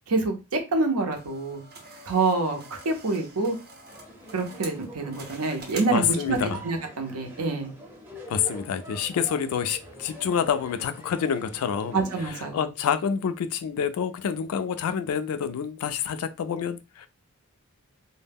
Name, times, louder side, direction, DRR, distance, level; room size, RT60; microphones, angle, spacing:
voice 1, 0.1-1.6 2.1-3.6 4.3-7.7 11.9-12.7, right 3 dB, 85° right, 0.7 m, -27 dB
sound 1, 1.1-6.6, right 3 dB, 45° right, 0.6 m, -45 dB
sound 2, 3.9-12.5, right 1 dB, 10° right, 0.6 m, -45 dB
voice 2, 5.9-6.6 8.3-12.0 12.5-17.1, left 7 dB, 75° left, 0.3 m, -27 dB
2.1 x 2.0 x 3.4 m
head